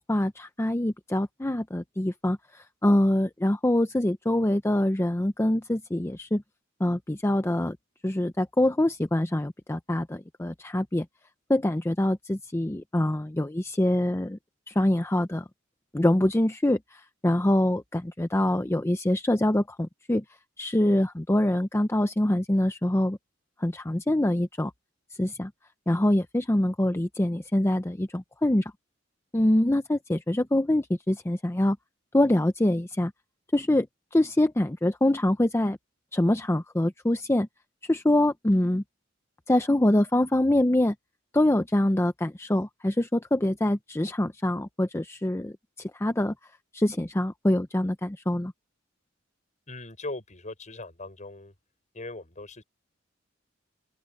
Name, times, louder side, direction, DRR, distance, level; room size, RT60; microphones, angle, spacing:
voice 1, 0.0-6.4 6.8-7.8 8.0-11.1 11.5-14.4 14.7-15.4 15.9-20.2 20.6-23.2 23.6-24.7 25.2-25.5 25.9-28.7 29.3-31.8 32.1-33.1 33.5-33.9 34.1-35.8 36.1-37.5 37.8-38.8 39.5-40.9 41.3-46.3 46.7-48.5, left 1 dB, 15° left, 0.6 m, -25 dB
voice 2, 49.7-51.5 51.9-52.6, left 2 dB, 40° left, 6.3 m, -39 dB
open air
head